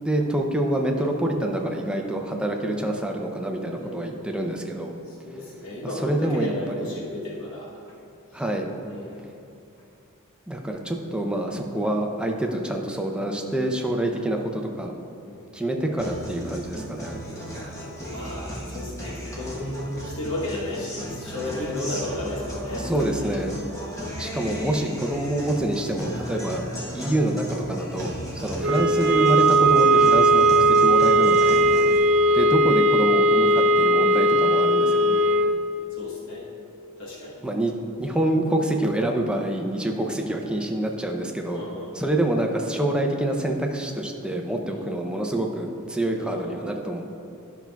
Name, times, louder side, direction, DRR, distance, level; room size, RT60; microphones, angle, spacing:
voice 1, 0.0-4.9 6.0-6.5 8.3-8.7 10.5-14.9 15.5-17.2 22.8-23.6 24.2-26.6 26.9-31.6 32.3-35.0 37.4-37.7 38.0-41.6 41.9-47.0, right 1 dB, 5° right, 1 dB, 0.5 m, -26 dB
voice 2, 3.7-4.5 5.1-7.7 8.3-8.4 8.8-9.2 10.7-10.8 15.2-15.6 17.2-23.9 28.4-28.6 31.6-32.2 34.9-35.5 35.9-36.5 37.0-37.4 40.0-40.4 41.5-42.3 44.6-45.0 46.1-46.7, left 1 dB, 65° left, -5 dB, 1.1 m, -35 dB
Guitar, 16.0-32.0, equal, 15° left, 1.0 m, -35 dB
sound 1, 28.6-35.6, right 1 dB, 60° right, 0.4 m, -18 dB
11.0 x 5.8 x 2.3 m, 2.8 s
head